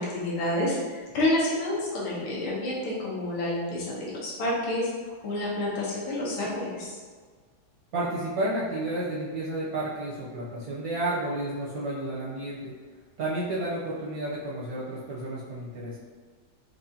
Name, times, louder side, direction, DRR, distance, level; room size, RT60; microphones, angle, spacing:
voice 1, 0.0-4.9 5.2-7.0, left 1 dB, 75° left, -5 dB, 1.8 m, -29 dB
voice 2, 7.9-12.7 13.2-16.0, right 1 dB, 70° right, -7 dB, 0.8 m, -31 dB
4.7 x 2.4 x 2.7 m, 1.5 s
omnidirectional pair, 2.3 m